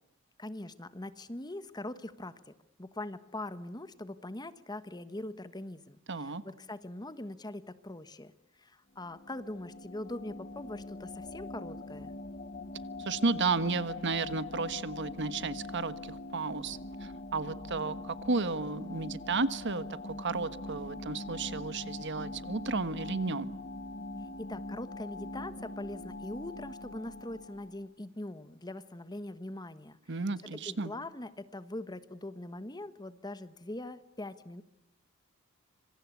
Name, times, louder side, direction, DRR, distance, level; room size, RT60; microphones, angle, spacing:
voice 1, 0.4-2.5 2.8-8.3 8.6-12.1 24.2-30.2 30.5-34.6, left 1 dB, 20° left, 12 dB, 1.3 m, -42 dB
voice 2, 6.1-6.4 13.0-23.5 30.1-30.9, right 3 dB, 60° right, 13 dB, 1.4 m, -33 dB
sound 1, 9.0-27.9, left 2 dB, 40° left, 1.1 m, -43 dB
26.5 x 26.5 x 8.4 m, 0.78 s
head